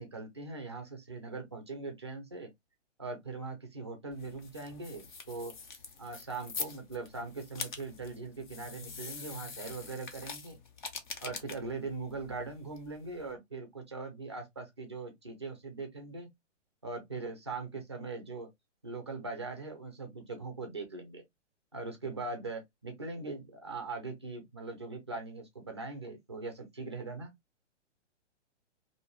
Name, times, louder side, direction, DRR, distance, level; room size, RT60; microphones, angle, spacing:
voice 1, 0.0-2.5 3.0-5.5 6.0-10.6 11.2-16.3 16.8-18.5 18.8-21.2 21.7-27.3, right 3 dB, 25° right, 0.4 m, -41 dB
sound 1, 4.1-13.3, left 5 dB, 40° left, 0.6 m, -44 dB
2.6 x 2.2 x 2.9 m
hypercardioid pair, 165°, 37 cm